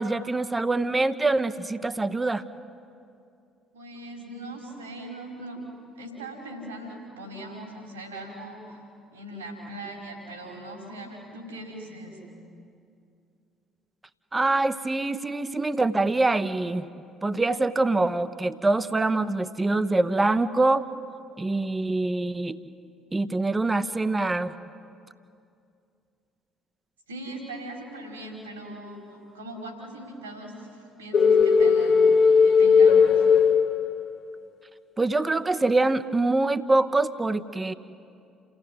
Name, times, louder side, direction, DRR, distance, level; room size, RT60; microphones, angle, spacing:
voice 1, 0.0-2.4 14.3-16.8 17.2-20.9 21.4-22.6 23.1-24.5 35.0-37.7, right 2 dB, 20° right, 12 dB, 1.0 m, -24 dB
voice 2, 3.7-5.6 5.9-8.8 9.1-12.2 27.1-32.0 32.4-33.2, right 1 dB, 80° right, 0 dB, 4.9 m, -40 dB
sound 1, 31.1-34.3, left 5 dB, 50° left, 1.5 m, -18 dB
29.5 x 16.5 x 9.5 m, 2.5 s
figure-of-eight pair, 50°, 0 cm